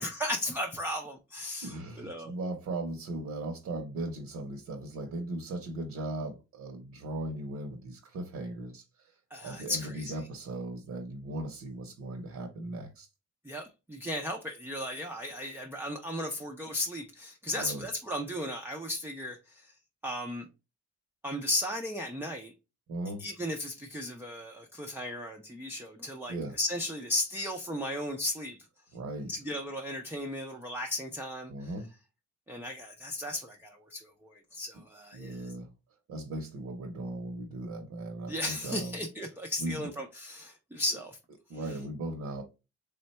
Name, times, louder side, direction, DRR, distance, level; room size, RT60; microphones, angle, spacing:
voice 1, 0.0-2.3 9.3-10.2 13.4-19.7 20.0-20.4 21.2-22.5 23.2-28.6 29.3-31.7 32.5-35.5 38.3-41.2, left 1 dB, 10° right, 0.4 m, -35 dB
voice 2, 1.6-9.1 9.4-13.1 17.5-17.9 22.9-23.2 26.3-26.6 28.9-29.3 31.5-31.9 35.1-35.7 36.1-39.0 39.6-39.9 41.5-42.4, right 2 dB, 65° right, 0.8 m, -38 dB
3.6 x 2.2 x 4.1 m
wide cardioid pair, 165°, 29 cm